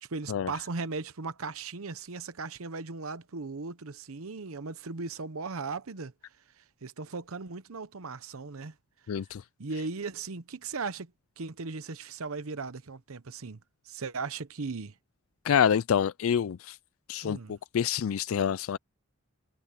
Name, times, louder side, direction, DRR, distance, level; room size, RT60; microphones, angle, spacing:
voice 1, 0.0-6.1 6.6-8.7 9.1-9.2 9.6-11.1 11.4-13.6 13.9-14.9 17.2-17.6, right 4 dB, 80° right, 0.9 m, -37 dB
voice 2, 9.1-9.4 15.4-16.8 17.1-18.8, left 8 dB, 75° left, 0.4 m, -27 dB
head